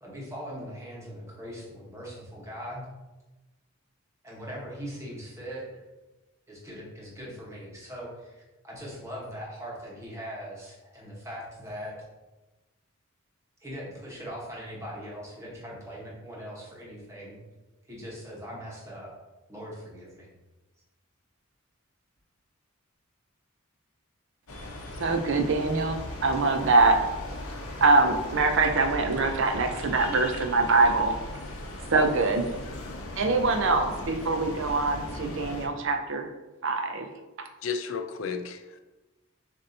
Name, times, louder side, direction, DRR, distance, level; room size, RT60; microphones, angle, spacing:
voice 1, 0.0-2.9 4.2-5.8 6.5-12.0 13.6-17.4 17.8-19.1 19.5-20.3, equal, 15° right, -4 dB, 1.1 m, -40 dB
sound 1, 24.5-35.7, left 1 dB, 85° left, 0.8 m, -38 dB
voice 2, 25.0-27.1 27.8-31.2 31.9-32.5 33.2-36.3 36.6-37.1 37.4-37.5, right 3 dB, 60° right, 6 dB, 0.5 m, -24 dB
voice 3, 37.6-38.8, left 5 dB, 65° left, 8 dB, 0.4 m, -33 dB
6.7 x 2.7 x 2.7 m, 1.1 s
head